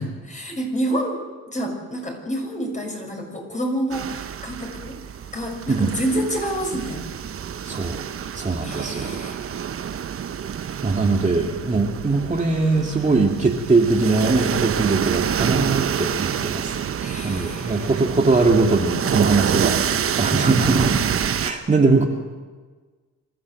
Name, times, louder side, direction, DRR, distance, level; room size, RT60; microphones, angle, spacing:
voice 1, 0.3-1.2 1.5-5.0 5.3-7.0 8.6-9.5 17.0-17.9, right 1 dB, 25° left, 2 dB, 6.5 m, -28 dB
sound 1, 3.9-21.5, right 8 dB, 45° right, 1.0 m, -27 dB
voice 2, 7.6-8.0 8.3-9.2 10.8-16.7 17.2-20.9 21.4-22.1, right 3 dB, 25° right, 0 dB, 2.4 m, -21 dB
27.0 x 13.5 x 7.7 m, 1.4 s
cardioid pair, 90°, 30 cm